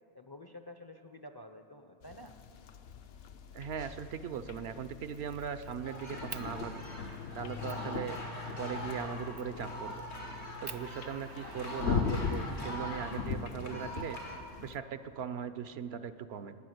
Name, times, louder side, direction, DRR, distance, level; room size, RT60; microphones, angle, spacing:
voice 1, 0.1-2.3, left 1 dB, 30° left, 6 dB, 0.5 m, -50 dB
sound 1, 2.0-14.8, left 5 dB, 65° left, 0.8 m, -40 dB
voice 2, 3.5-6.8 7.3-8.2 8.6-9.9 10.6-14.2 14.6-16.6, right 8 dB, 75° right, 12 dB, 0.9 m, -39 dB
Fire, 4.1-4.4 4.8-5.7 6.3-6.5 7.1-7.2 7.7-7.9 9.3-9.6 10.1-10.2 10.6-12.4 13.5-14.4, right 5 dB, 40° right, 0.3 m, -48 dB
sound 2, 5.8-14.4, equal, 90° left, 2.2 m, -43 dB
19.5 x 9.5 x 7.8 m, 2.7 s
omnidirectional pair, 1.1 m